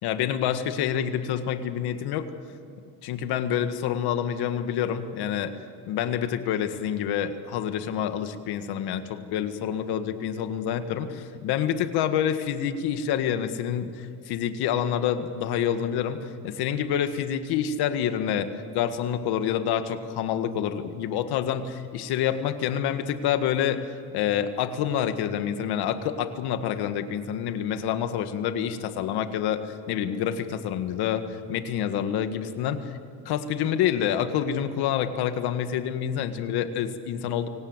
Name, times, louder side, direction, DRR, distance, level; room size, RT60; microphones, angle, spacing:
voice 1, 0.0-2.3 3.0-5.5 5.9-23.8 24.1-32.9 33.3-37.5, left 9 dB, 80° left, 9 dB, 1.8 m, -27 dB
24.0 x 18.0 x 8.1 m, 2.7 s
cardioid pair, 145°, 38 cm